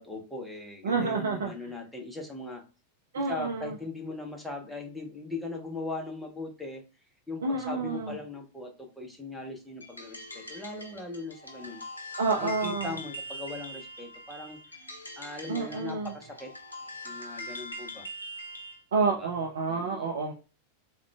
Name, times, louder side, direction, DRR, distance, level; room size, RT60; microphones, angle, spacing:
voice 1, 0.0-2.6 3.2-6.8 7.3-14.9 15.2-16.5 17.0-18.1 19.0-19.3 19.7-20.1, left 2 dB, ahead, 0 dB, 0.7 m, -39 dB
voice 2, 0.8-1.5 3.1-3.7 7.4-8.2 12.2-13.0 15.5-16.1 18.9-20.3, right 4 dB, 65° right, 1 dB, 0.4 m, -29 dB
sound 1, 9.8-18.8, left 1 dB, 80° left, 0.5 m, -42 dB
3.5 x 2.2 x 2.3 m, 0.33 s
figure-of-eight pair, 90°, 0 cm